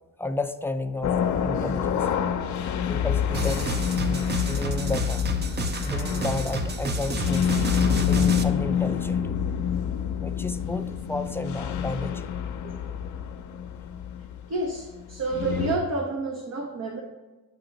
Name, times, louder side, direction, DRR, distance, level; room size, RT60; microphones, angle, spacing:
voice 1, 0.2-2.1 2.9-3.7 4.0-5.3 5.8-7.5 8.0-9.2 10.2-12.4, left 2 dB, 10° left, 8 dB, 0.4 m, -32 dB
sound 1, 1.0-15.8, left 8 dB, 70° left, 0.6 m, -27 dB
sound 2, 3.3-8.4, right 1 dB, 35° right, 0.6 m, -30 dB
voice 2, 14.5-17.0, right 3 dB, 60° right, 1 dB, 0.9 m, -29 dB
8.3 x 2.9 x 5.1 m, 1.2 s
cardioid pair, 80°, 30 cm